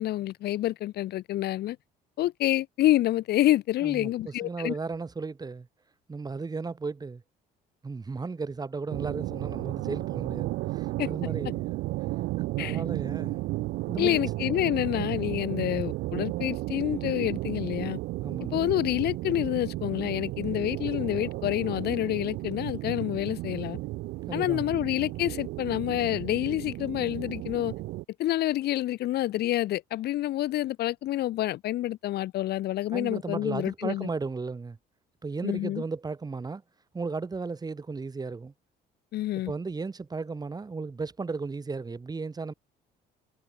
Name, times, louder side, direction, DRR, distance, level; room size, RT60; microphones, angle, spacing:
voice 1, 0.0-1.8 2.2-4.7 11.0-11.1 12.6-12.8 14.0-18.0 18.5-23.8 24.3-27.7 28.2-34.1 35.4-35.8 39.1-39.5, left 14 dB, 70° left, 2.8 m, -28 dB
voice 2, 3.8-5.7 6.1-7.2 7.8-11.6 12.5-13.4 13.9-14.2 18.2-18.7 24.3-24.8 32.9-34.8 35.2-36.6 36.9-38.5 39.5-42.5, right 4 dB, 25° right, 4.7 m, -35 dB
sound 1, 8.9-28.0, right 19 dB, 85° right, 1.2 m, -33 dB
cardioid pair, 110°, 17 cm